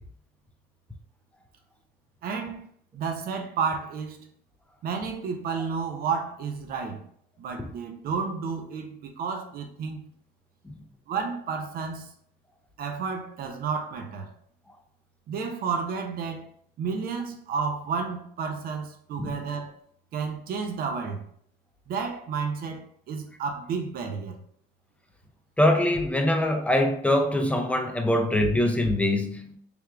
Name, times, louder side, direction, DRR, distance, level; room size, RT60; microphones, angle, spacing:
voice 1, 2.2-2.7 2.9-4.3 4.8-7.0 7.4-10.1 11.1-12.1 12.8-14.3 15.3-16.5 16.8-19.7 20.1-21.2 21.9-24.4, right 5 dB, 60° right, 0.7 m, -31 dB
voice 2, 25.6-29.6, left 1 dB, 10° left, 0.5 m, -23 dB
3.5 x 2.4 x 4.4 m
cardioid pair, 110°, 17 cm